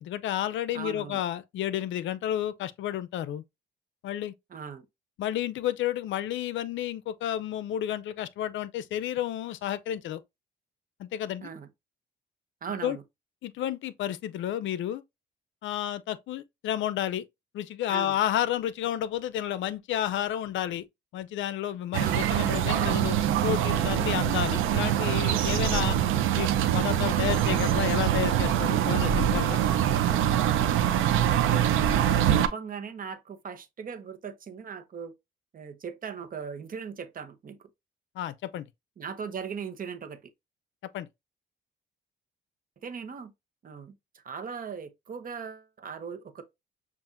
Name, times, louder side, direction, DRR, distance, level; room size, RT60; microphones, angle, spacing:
voice 1, 0.0-3.4 4.0-4.3 5.2-10.2 11.0-11.5 12.8-13.0 13.4-15.0 15.6-17.3 17.5-20.9 21.1-26.0 26.4-29.6 38.2-38.7 40.9-41.1, left 11 dB, 75° left, 0.5 m, -31 dB
voice 2, 0.7-1.2 4.5-4.8 11.4-11.7 12.6-13.0 17.9-18.2 22.0-22.3 25.7-25.9 31.3-35.1 35.5-37.6 39.0-40.2 42.8-43.3 43.6-43.9 44.2-46.4, right 6 dB, 45° right, 0.9 m, -39 dB
sound 1, 21.9-32.5, right 10 dB, 85° right, 0.6 m, -24 dB
7.1 x 2.5 x 2.5 m
cardioid pair, 90°, 20 cm